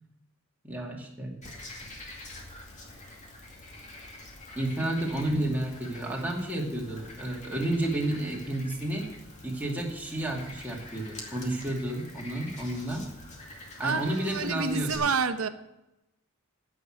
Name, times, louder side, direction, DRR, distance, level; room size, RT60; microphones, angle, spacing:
voice 1, 0.6-1.3 4.6-9.1 9.4-13.1 13.8-15.0, right 1 dB, 10° right, -2 dB, 2.4 m, -31 dB
Frog, 1.4-15.0, left 2 dB, 35° left, 2.4 m, -46 dB
voice 2, 13.8-15.5, right 5 dB, 75° right, 10 dB, 0.9 m, -29 dB
16.0 x 6.3 x 6.5 m, 0.92 s
head